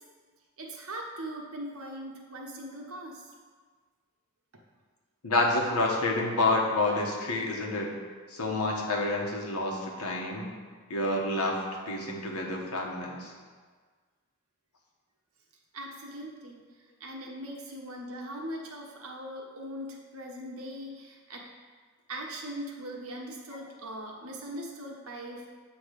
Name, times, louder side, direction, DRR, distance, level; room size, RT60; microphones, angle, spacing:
voice 1, 0.6-3.3 15.7-16.6 17.0-21.5 22.1-25.5, right 1 dB, 70° right, -1 dB, 1.2 m, -40 dB
voice 2, 5.2-7.9 8.3-10.5 10.9-11.6 11.9-13.3, left 2 dB, 80° left, -1 dB, 1.3 m, -28 dB
8.4 x 3.2 x 6.5 m, 1.5 s
head